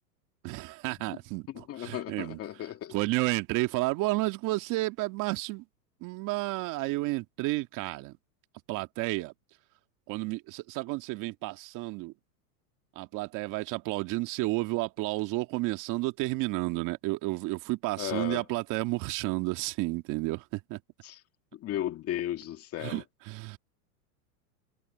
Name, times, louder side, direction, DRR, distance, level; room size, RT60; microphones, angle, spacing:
voice 1, 0.4-2.4 2.9-5.6 6.0-8.1 8.7-9.3 10.1-12.1 13.0-20.8 22.8-23.6, right 21 dB, 40° right, 2.2 m, -31 dB
voice 2, 1.6-2.9 18.0-18.4 21.0-21.2 21.5-23.0, left 12 dB, 30° left, 2.3 m, -35 dB
hypercardioid pair, 130°, 47 cm